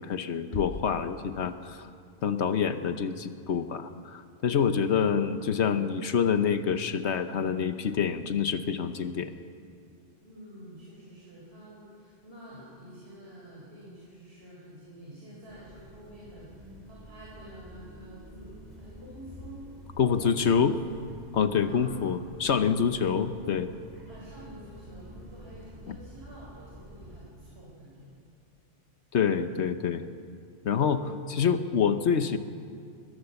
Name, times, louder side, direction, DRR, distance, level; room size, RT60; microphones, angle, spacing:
voice 1, 0.0-1.9 2.2-9.3 20.0-20.7 21.3-23.7 25.9-26.0 29.1-30.0 30.6-32.4, left 7 dB, 70° left, 10 dB, 1.2 m, -27 dB
sound 1, 0.5-2.1, left 3 dB, 45° left, 1.0 m, -41 dB
voice 2, 10.2-19.7 20.0-20.6 20.8-20.9 21.6-21.9 24.1-28.3, right 1 dB, 55° right, -6 dB, 5.2 m, -48 dB
sound 2, 15.5-27.3, right 1 dB, 35° right, 3.8 m, -48 dB
21.5 x 21.5 x 7.0 m, 2.3 s
omnidirectional pair, 1.2 m